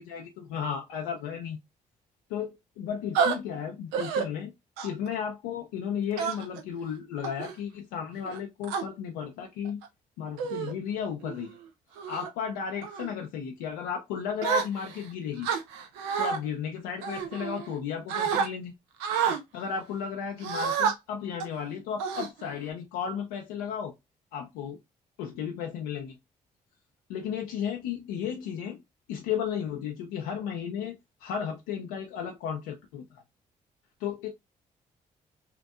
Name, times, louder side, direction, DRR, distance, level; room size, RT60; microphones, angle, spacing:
voice 1, 0.0-1.6 2.3-4.5 4.8-9.8 10.2-11.6 12.1-15.5 16.2-18.8 19.5-23.9 24.3-24.8 25.2-26.2 27.1-28.8 29.1-31.0 31.2-33.2 34.0-34.3, left 8 dB, 85° left, 0.4 m, -34 dB
sound 1, 3.2-3.4 3.9-4.3 4.8-5.1 6.2-6.6 7.2-7.5 8.3-8.8 9.7-9.9 10.4-10.7 11.2-11.5 12.0-12.3 12.8-13.1 14.4-15.0 15.4-16.4 17.0-17.8 18.1-18.5 19.0-19.4 20.4-20.9 21.4-21.6 22.0-22.7, right 7 dB, 90° right, 0.5 m, -29 dB
2.8 x 2.5 x 2.3 m
hypercardioid pair, 45°, 18 cm